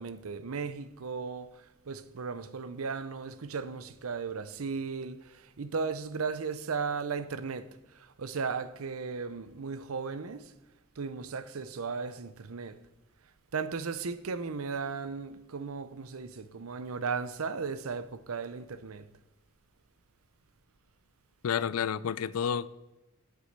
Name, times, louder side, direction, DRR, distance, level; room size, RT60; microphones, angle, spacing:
voice 1, 0.0-7.7 7.9-10.5 11.0-12.8 13.5-19.1, right 5 dB, 75° right, 0.7 m, -36 dB
voice 2, 21.4-22.7, left 7 dB, 80° left, 0.4 m, -30 dB
8.2 x 8.2 x 6.6 m
head